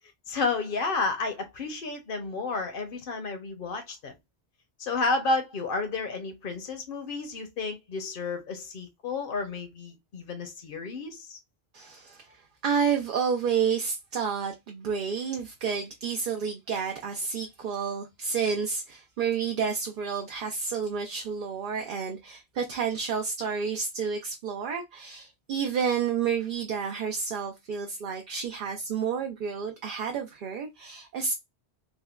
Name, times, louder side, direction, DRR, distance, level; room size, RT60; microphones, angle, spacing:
voice 1, 0.3-4.1 4.8-11.4, left 3 dB, 60° left, 0.9 m, -31 dB
voice 2, 11.7-31.3, right 6 dB, 60° right, 0.6 m, -30 dB
3.6 x 2.1 x 2.2 m
omnidirectional pair, 1.1 m